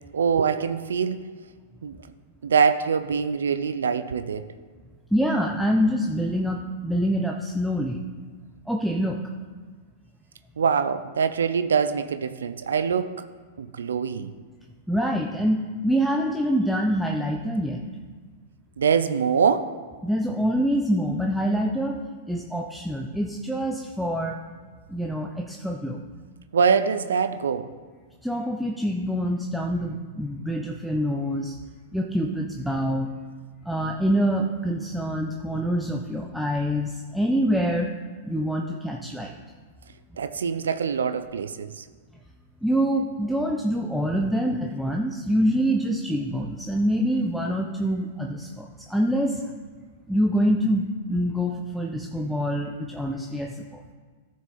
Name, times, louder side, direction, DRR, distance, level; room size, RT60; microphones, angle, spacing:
voice 1, 0.1-1.3 1.8-2.1 2.4-4.5 10.6-13.3 13.6-14.3 18.8-19.8 26.5-27.7 40.2-41.9, right 6 dB, 75° right, 11 dB, 0.5 m, -24 dB
voice 2, 5.1-8.0 8.7-9.2 14.9-17.8 20.0-22.0 22.3-24.4 24.9-26.0 28.2-31.6 31.9-33.1 33.6-37.9 38.2-39.3 42.6-49.4 50.1-53.9, equal, ahead, 1 dB, 0.7 m, -25 dB
14.5 x 6.3 x 4.3 m, 1.5 s
hypercardioid pair, 100°, 0 cm